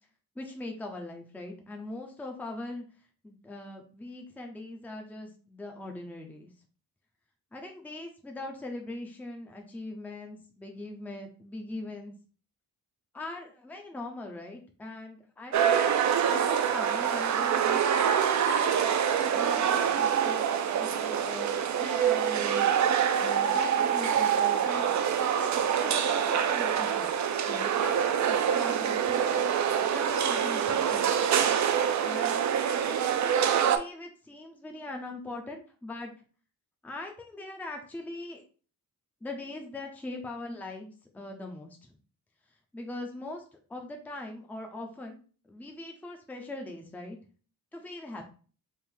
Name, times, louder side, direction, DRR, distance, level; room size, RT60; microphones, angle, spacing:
voice 1, 0.4-2.8 3.2-6.5 7.5-12.1 13.1-17.8 18.4-20.4 20.7-21.5 21.8-22.7 23.2-24.9 25.4-27.1 27.5-29.3 29.8-31.1 32.0-32.4 32.8-36.1 36.8-38.4 39.2-41.9 42.7-43.4 43.7-45.2 45.5-47.2 47.7-48.2, left 2 dB, 5° left, 3 dB, 0.5 m, -41 dB
sound 1, 15.5-33.8, right 8 dB, 50° right, 0.5 m, -26 dB
3.6 x 2.4 x 4.5 m, 0.39 s
wide cardioid pair, 145°, 36 cm